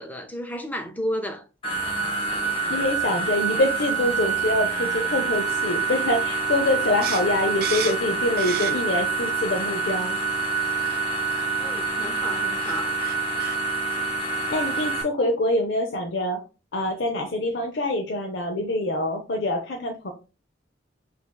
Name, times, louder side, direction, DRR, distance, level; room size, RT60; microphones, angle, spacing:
voice 1, 0.0-1.4 11.6-12.9, equal, 10° left, 0.5 m, -32 dB
sound 1, 1.6-15.0, right 4 dB, 25° left, 1.0 m, -26 dB
voice 2, 2.7-10.2 14.5-16.4 16.7-20.1, left 1 dB, 65° left, 0.6 m, -25 dB
sound 2, 7.0-9.1 9.4-10.2 10.8-11.0 11.3-11.4 12.3-12.4 12.6-13.6, right 9 dB, 50° right, 0.4 m, -34 dB
6.3 x 2.8 x 2.2 m
head